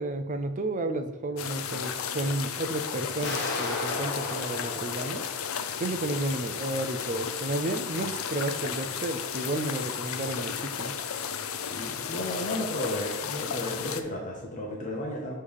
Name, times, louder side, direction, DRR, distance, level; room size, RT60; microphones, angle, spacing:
voice 1, 0.0-5.2 5.8-10.9, right 2 dB, 35° right, 8 dB, 0.5 m, -32 dB
sound 1, 1.4-14.0, left 7 dB, 80° left, 0.5 m, -34 dB
sound 2, 3.2-6.1, left 3 dB, 55° left, 1.1 m, -35 dB
voice 2, 11.7-15.4, left 1 dB, 35° left, -1 dB, 0.9 m, -33 dB
6.5 x 3.3 x 5.5 m, 1.0 s
head